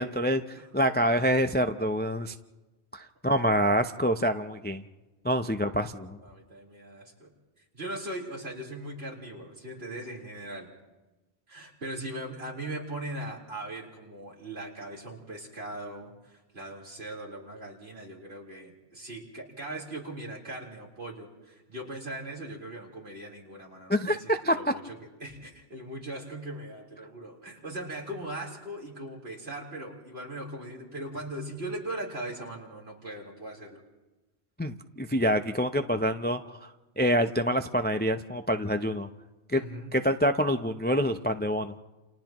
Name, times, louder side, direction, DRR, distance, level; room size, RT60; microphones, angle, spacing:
voice 1, 0.0-2.3 2.9-4.8 5.2-6.2 23.9-24.6 34.6-36.7 37.0-39.1 39.5-39.6 39.9-41.7, equal, 15° left, 7 dB, 0.5 m, -26 dB
voice 2, 6.2-7.3 7.7-10.7 11.5-33.8 39.5-40.0, right 1 dB, 65° right, -3 dB, 4.3 m, -39 dB
29.5 x 29.0 x 3.0 m, 1.1 s
omnidirectional pair, 1.2 m